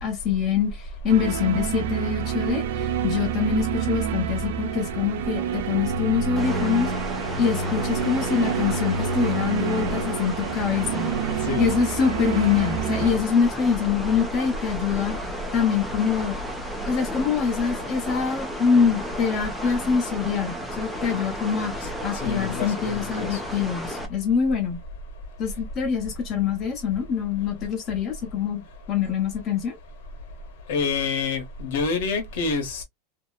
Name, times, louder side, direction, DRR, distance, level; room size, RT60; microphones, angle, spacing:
voice 1, 0.0-6.9 7.4-11.1 11.6-15.2 15.5-16.3 16.9-21.7 22.0-24.8 25.4-29.8, left 6 dB, 25° left, 1.0 m, -24 dB
sound 1, 1.1-13.1, right 6 dB, 70° right, 0.4 m, -28 dB
sound 2, 6.4-24.1, equal, ahead, 0.5 m, -34 dB
voice 2, 22.2-23.4 30.7-32.8, left 5 dB, 70° left, 1.0 m, -27 dB
2.8 x 2.0 x 2.3 m
supercardioid pair, 170°, 0 cm